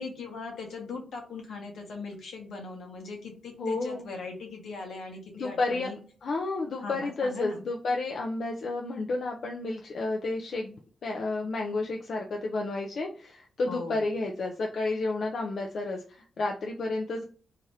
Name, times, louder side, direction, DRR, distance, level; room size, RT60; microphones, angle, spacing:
voice 1, 0.0-6.0 6.8-7.6 13.7-14.1, left 4 dB, 80° left, 2 dB, 1.0 m, -40 dB
voice 2, 3.6-4.0 5.3-5.9 6.2-10.8 11.0-17.2, left 2 dB, 60° left, 1 dB, 0.4 m, -31 dB
2.7 x 2.5 x 3.2 m, 0.42 s
cardioid pair, 85°, 0 cm